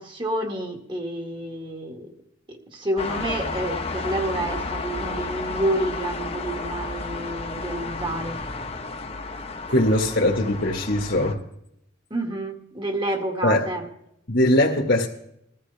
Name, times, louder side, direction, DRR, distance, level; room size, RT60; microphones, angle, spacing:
voice 1, 0.0-2.1 2.5-8.4 12.1-13.9, right 1 dB, 25° right, 2.1 m, -29 dB
sound 1, 3.0-11.3, left 3 dB, 35° left, 1.3 m, -32 dB
voice 2, 9.7-11.4 13.4-13.7 14.3-15.1, left 1 dB, 65° left, 2.0 m, -21 dB
21.5 x 14.5 x 3.5 m
head